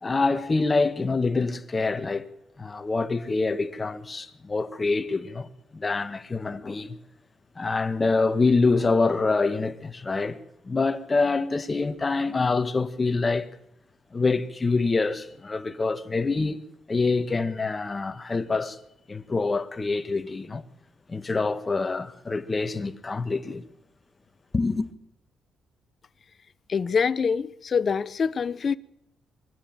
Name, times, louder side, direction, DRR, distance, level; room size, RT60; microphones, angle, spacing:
voice 1, 0.0-2.3 2.6-6.9 7.6-10.4 10.6-13.5 14.1-16.6 16.9-18.8 19.1-20.6 21.1-23.6 24.5-24.9, left 3 dB, 25° left, 1.6 m, -26 dB
voice 2, 26.7-28.7, left 6 dB, 45° left, 0.8 m, -25 dB
24.0 x 13.0 x 8.9 m
cardioid pair, 90°, 0 cm